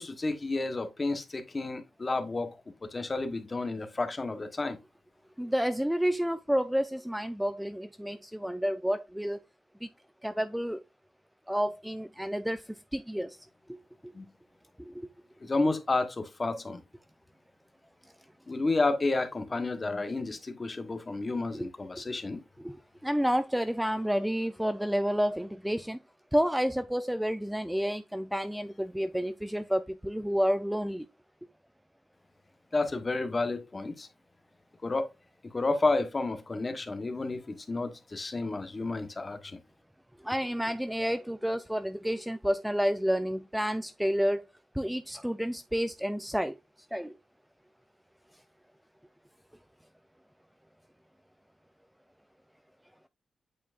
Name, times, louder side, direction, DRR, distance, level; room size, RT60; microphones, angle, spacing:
voice 1, 0.0-4.8 14.1-14.3 15.4-16.8 18.5-22.4 32.7-34.1 34.8-35.1 35.5-39.6, left 3 dB, 30° left, 1.1 m, -31 dB
voice 2, 5.4-9.4 9.8-9.9 10.2-10.8 11.5-12.6 12.9-13.4 13.7-13.8 14.8-15.1 21.5-21.7 22.6-22.8 23.0-26.0 26.3-31.1 40.2-44.4 44.7-46.6 46.9-47.1, equal, 5° right, 0.4 m, -30 dB
8.5 x 4.5 x 2.5 m
wide cardioid pair, 115°, 0 cm